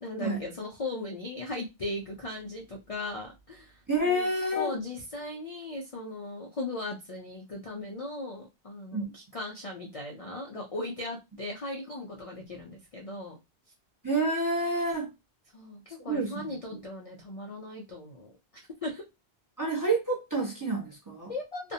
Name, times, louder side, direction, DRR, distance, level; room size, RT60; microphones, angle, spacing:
voice 1, 0.0-4.3 4.5-13.4 15.5-18.3 18.8-19.0 21.3-21.7, left 2 dB, 50° left, 0.4 m, -38 dB
voice 2, 3.9-4.7 8.9-9.0 14.0-15.1 16.1-16.5 19.6-21.3, right 2 dB, 20° right, 0.6 m, -28 dB
2.5 x 2.2 x 2.6 m
omnidirectional pair, 1.1 m